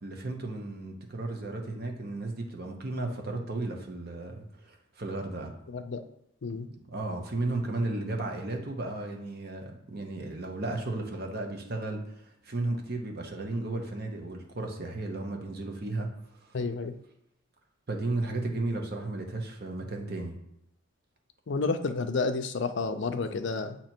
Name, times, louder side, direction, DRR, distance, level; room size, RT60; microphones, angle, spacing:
voice 1, 0.0-5.5 6.7-16.1 16.4-16.5 17.9-20.4, right 2 dB, 50° right, 3 dB, 0.9 m, -34 dB
voice 2, 5.7-6.0 6.4-6.7 16.5-16.9 21.5-23.8, left 4 dB, 60° left, 8 dB, 0.5 m, -30 dB
7.7 x 2.9 x 4.4 m, 0.79 s
head